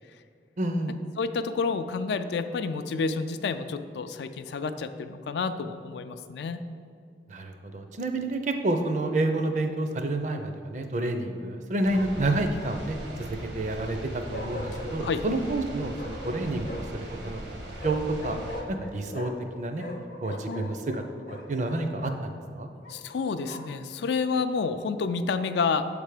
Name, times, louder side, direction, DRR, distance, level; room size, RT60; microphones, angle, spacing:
voice 1, 0.6-1.0 7.3-17.6 17.8-18.4 18.7-19.8 20.2-21.0 21.3-22.7, right 2 dB, 40° right, 6 dB, 0.5 m, -29 dB
voice 2, 1.2-6.6 15.0-15.3 20.5-20.7 22.9-25.8, left 4 dB, 75° left, 10 dB, 0.3 m, -29 dB
Bark, 8.8-9.4 11.9-13.0 14.3-15.2 15.9-17.0 17.8-19.5 19.8-22.2 22.8-23.8, left 1 dB, 45° left, 0.7 m, -41 dB
sound 1, 11.8-18.6, right 1 dB, 80° right, 1.1 m, -39 dB
7.4 x 3.3 x 4.9 m, 2.4 s
head